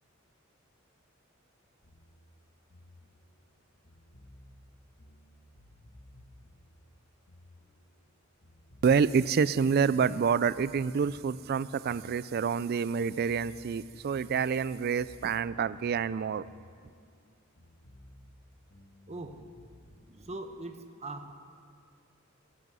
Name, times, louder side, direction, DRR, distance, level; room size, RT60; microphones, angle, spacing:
sound 1, 1.8-8.1 8.4-12.7 13.0-17.3 17.6-20.1, left 1 dB, 60° left, 1.6 m, -56 dB
voice 1, 8.8-16.4, right 6 dB, 50° right, 0.3 m, -27 dB
voice 2, 19.1-19.6 20.0-21.3, right 2 dB, 30° right, 0.9 m, -42 dB
19.0 x 10.5 x 6.2 m
head